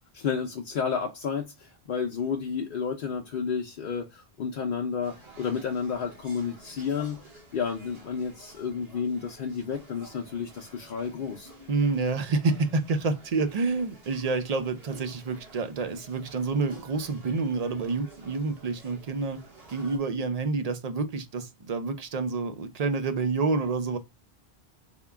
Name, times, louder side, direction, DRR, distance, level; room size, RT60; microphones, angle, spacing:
voice 1, 0.1-7.2 7.5-11.5, left 6 dB, 55° left, 0.7 m, -31 dB
sound 1, 5.0-20.0, right 3 dB, 65° right, 1.6 m, -51 dB
voice 2, 11.7-19.4 19.7-24.0, right 4 dB, 50° right, 0.5 m, -28 dB
3.6 x 2.3 x 3.3 m
omnidirectional pair, 1.1 m